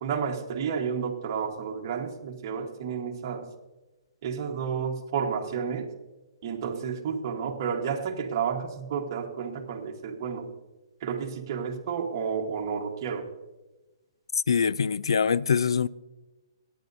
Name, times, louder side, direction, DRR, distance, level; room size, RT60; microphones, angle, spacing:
voice 1, 0.0-3.4 4.2-5.9 6.4-10.5 11.0-13.2, right 6 dB, 35° right, 1.3 m, -31 dB
voice 2, 14.5-15.9, left 6 dB, 90° left, 0.4 m, -24 dB
24.0 x 9.2 x 2.7 m
hypercardioid pair, 160°, 3 cm